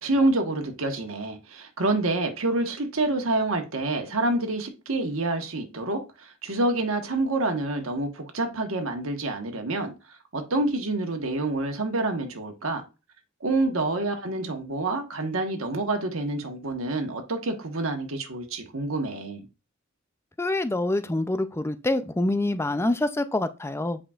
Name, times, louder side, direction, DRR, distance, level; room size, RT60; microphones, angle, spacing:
voice 1, 0.0-12.8 13.4-19.5, right 2 dB, 85° right, 1.3 m, -27 dB
voice 2, 20.4-24.0, left 2 dB, 10° left, 0.4 m, -26 dB
8.7 x 5.0 x 2.4 m
head